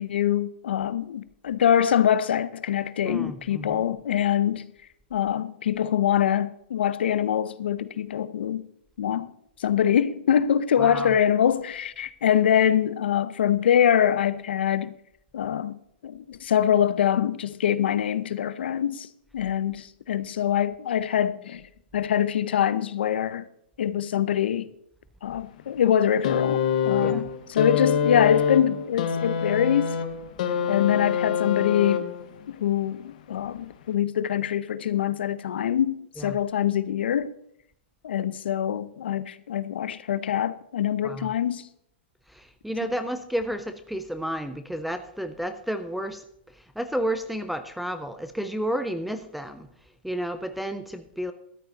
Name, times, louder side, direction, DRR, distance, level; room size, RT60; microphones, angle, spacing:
voice 1, 0.0-4.7 5.1-8.7 9.0-9.3 9.6-14.9 15.3-19.1 19.3-21.6 21.9-23.4 23.8-24.7 25.2-30.0 30.7-32.1 32.5-37.3 38.0-41.7, left 9 dB, 65° left, 0.7 m, -24 dB
voice 2, 3.0-3.9 10.8-11.2 27.0-27.3 36.2-36.4 41.0-41.3 42.3-46.2 46.8-49.7 50.0-51.3, equal, ahead, 0.3 m, -31 dB
sound 1, 26.2-32.4 33.5-33.6, left 7 dB, 40° left, 1.1 m, -25 dB
13.0 x 9.6 x 4.0 m
hypercardioid pair, 180°, 6 cm